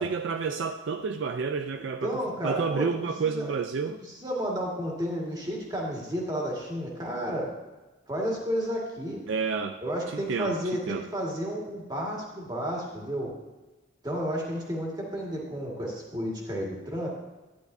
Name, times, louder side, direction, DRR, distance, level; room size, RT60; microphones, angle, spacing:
voice 1, 0.0-2.1 2.4-4.0 9.3-9.8 10.1-10.6 10.9-11.0, right 5 dB, 65° right, 7 dB, 0.4 m, -30 dB
voice 2, 1.7-2.9 3.2-3.5 3.8-7.5 8.1-9.2 9.8-13.3 14.0-17.1, equal, 20° right, -3 dB, 1.8 m, -32 dB
11.5 x 10.0 x 2.7 m, 1.2 s
head